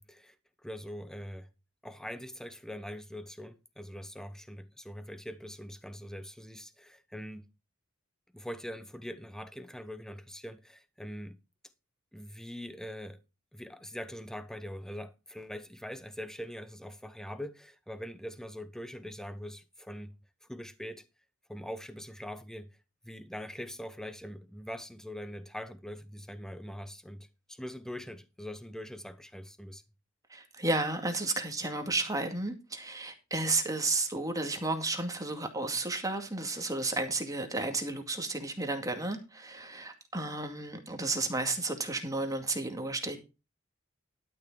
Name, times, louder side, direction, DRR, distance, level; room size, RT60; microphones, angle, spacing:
voice 1, 0.0-1.5 1.8-7.5 8.3-11.4 12.1-13.2 13.5-20.1 20.4-21.0 21.5-22.8 23.0-29.8, equal, 5° left, 1.0 m, -43 dB
voice 2, 30.3-43.2, right 2 dB, 15° right, 2.2 m, -32 dB
12.0 x 6.5 x 4.9 m
head